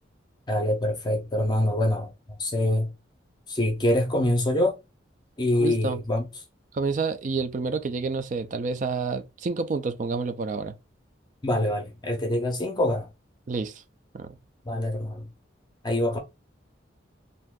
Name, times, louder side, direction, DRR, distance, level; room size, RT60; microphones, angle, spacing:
voice 1, 0.5-2.9 3.5-4.8 5.4-6.3 11.4-13.1 14.6-15.3 15.8-16.2, left 1 dB, 25° left, 0.6 m, -25 dB
voice 2, 5.6-6.0 6.7-10.7 13.5-13.8 14.1-14.4, right 4 dB, 40° right, 0.3 m, -29 dB
2.6 x 2.4 x 3.5 m
head